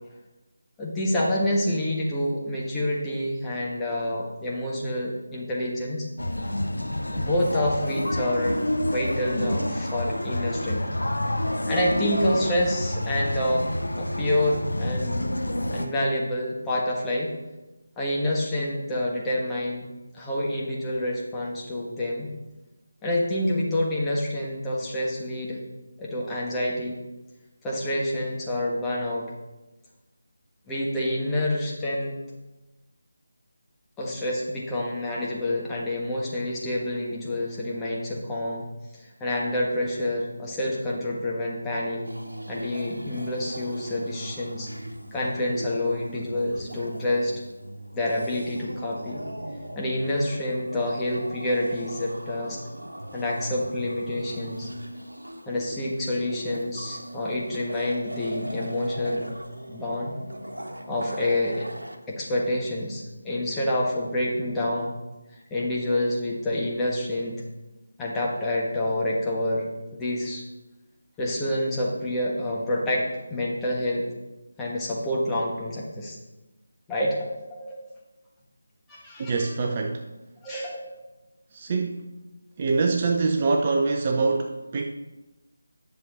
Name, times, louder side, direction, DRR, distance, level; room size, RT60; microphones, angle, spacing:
voice 1, 0.8-6.1 7.1-8.6 8.9-10.8 11.7-13.7 14.0-15.3 15.7-17.3 18.0-19.9 20.1-22.3 23.0-25.6 26.0-27.0 27.6-29.3 30.7-32.2 34.0-38.7 38.9-42.0 42.5-44.7 45.1-47.3 47.9-49.2 49.7-52.6 53.1-54.7 55.5-59.3 59.7-60.1 60.9-61.7 62.1-65.0 65.3-67.4 68.0-69.6 69.9-70.4 71.2-74.1 74.6-76.2 76.9-77.9 78.9-79.3 80.4-81.0, left 1 dB, 10° left, -5 dB, 1.4 m, -28 dB
sound 1, 6.2-15.9, left 1 dB, 75° left, 1.1 m, -28 dB
sound 2, 42.0-62.0, right 1 dB, 80° right, 1.3 m, -39 dB
voice 2, 79.2-80.1 81.5-82.1 82.6-84.8, right 3 dB, 30° right, 3 dB, 0.6 m, -24 dB
10.0 x 6.9 x 4.1 m, 1.1 s
figure-of-eight pair, 160°, 0 cm